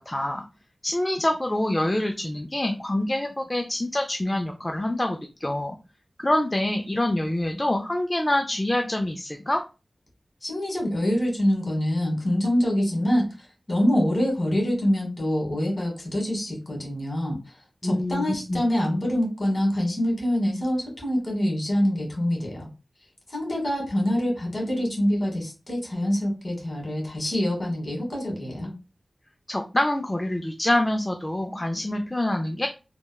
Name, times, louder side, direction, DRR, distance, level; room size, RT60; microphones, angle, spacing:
voice 1, 0.1-0.4 0.8-5.8 6.2-9.6 17.8-18.6 29.5-32.7, left 1 dB, 20° left, 3 dB, 0.3 m, -26 dB
voice 2, 10.4-13.3 13.7-17.4 17.8-22.6 23.3-28.7, equal, 40° left, -1 dB, 1.4 m, -25 dB
3.3 x 2.1 x 2.2 m, 0.30 s
wide cardioid pair, 80°, 0 cm